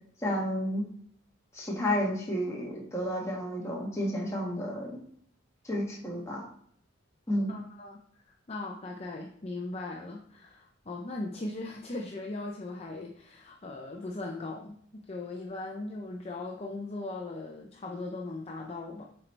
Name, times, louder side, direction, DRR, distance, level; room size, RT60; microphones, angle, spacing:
voice 1, 0.2-0.8 1.5-5.0 5.6-6.4 7.3-7.5, equal, 15° left, -3 dB, 1.6 m, -31 dB
voice 2, 7.5-8.0 8.3-19.0, left 2 dB, 30° left, 0 dB, 0.6 m, -39 dB
8.0 x 4.5 x 3.3 m, 0.64 s
head